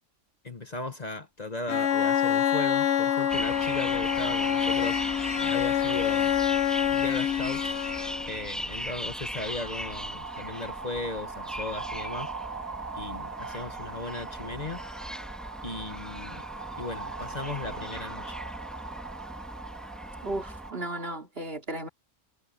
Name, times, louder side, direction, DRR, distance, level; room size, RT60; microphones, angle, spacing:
voice 1, 0.4-5.0 5.4-6.3 6.9-7.6 8.3-12.3 12.9-14.8 15.6-16.4 16.8-18.3, left 2 dB, 35° left, 1.3 m, -37 dB
Bowed string instrument, 1.7-8.4, left 9 dB, 70° left, 1.1 m, -26 dB
sound 1, 1.9-21.2, right 4 dB, 35° right, 1.2 m, -41 dB
sound 2, 3.3-20.7, equal, ahead, 2.5 m, -38 dB
voice 2, 20.2-21.9, right 1 dB, 50° right, 3.0 m, -35 dB
omnidirectional pair, 1.3 m